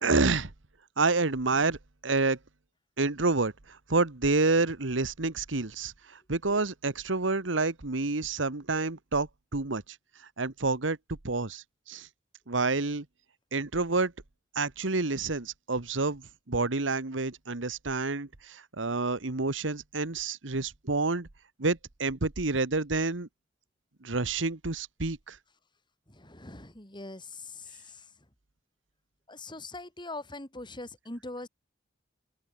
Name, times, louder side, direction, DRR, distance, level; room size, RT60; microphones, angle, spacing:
voice 1, 0.0-0.5 1.0-1.8 2.0-2.4 3.0-3.5 3.9-5.9 6.3-9.8 10.4-11.0 11.2-12.1 12.5-13.0 13.5-14.1 14.5-16.2 16.5-21.3 21.6-23.3 24.0-25.4, right 3 dB, 80° right, 1.5 m, -28 dB
voice 2, 26.1-28.1 29.3-31.5, left 2 dB, 25° left, 5.4 m, -42 dB
open air
head